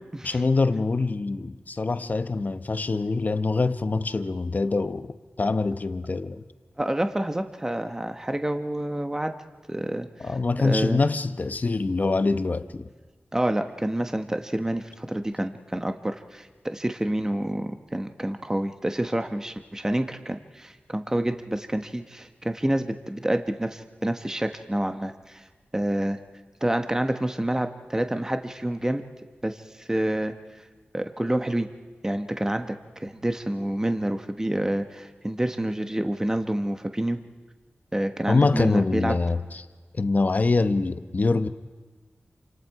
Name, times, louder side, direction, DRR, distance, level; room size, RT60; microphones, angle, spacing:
voice 1, 0.2-6.4 10.2-12.9 38.3-39.6 39.9-41.5, left 3 dB, 45° left, 0.9 m, -24 dB
voice 2, 6.8-9.3 9.7-10.3 10.6-11.0 13.3-25.4 25.7-26.2 26.6-29.0 29.4-30.6 30.9-31.7 32.0-37.2 37.9-39.2, right 1 dB, 15° right, 1.1 m, -28 dB
28.0 x 26.0 x 4.8 m
wide cardioid pair, 75°, 4 cm